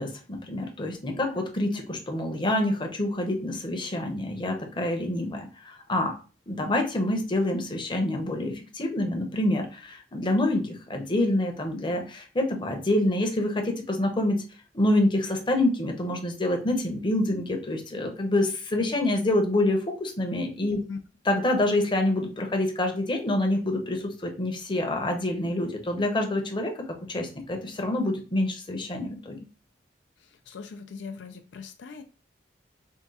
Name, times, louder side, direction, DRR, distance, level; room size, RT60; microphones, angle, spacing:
voice 1, 0.0-6.1 6.5-14.4 14.7-20.8 21.3-26.7 27.1-29.4, left 1 dB, 25° left, 0.8 m, -27 dB
voice 2, 30.2-32.0, left 4 dB, 80° left, 0.4 m, -40 dB
3.6 x 2.3 x 4.0 m
head